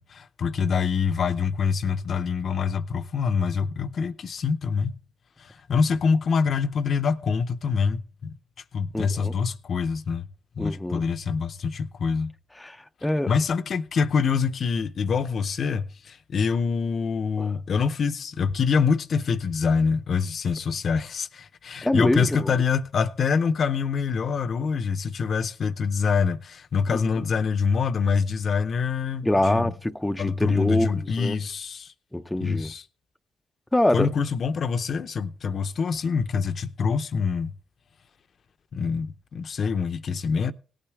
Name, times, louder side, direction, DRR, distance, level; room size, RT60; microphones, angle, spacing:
voice 1, 0.0-5.0 5.4-8.3 8.7-10.2 10.6-12.3 13.3-29.7 30.2-31.9 32.4-32.8 33.9-37.5 38.7-40.5, left 5 dB, 50° left, 0.6 m, -25 dB
voice 2, 8.9-9.3 10.6-11.0 12.6-13.3 17.4-17.5 21.8-22.5 26.9-27.3 29.2-31.4 32.1-32.7 33.7-34.1, left 1 dB, 10° left, 0.5 m, -25 dB
17.5 x 8.8 x 3.5 m
cardioid pair, 90°, 0 cm